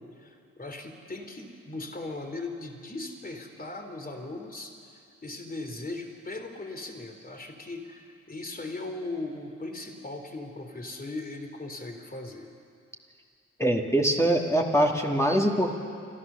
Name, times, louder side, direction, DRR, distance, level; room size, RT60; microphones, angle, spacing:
voice 1, 0.0-12.5, left 2 dB, 30° left, 4 dB, 3.3 m, -38 dB
voice 2, 13.6-15.7, right 1 dB, 10° left, 0 dB, 2.4 m, -23 dB
29.5 x 13.0 x 6.9 m, 2.3 s
supercardioid pair, 50°, 29 cm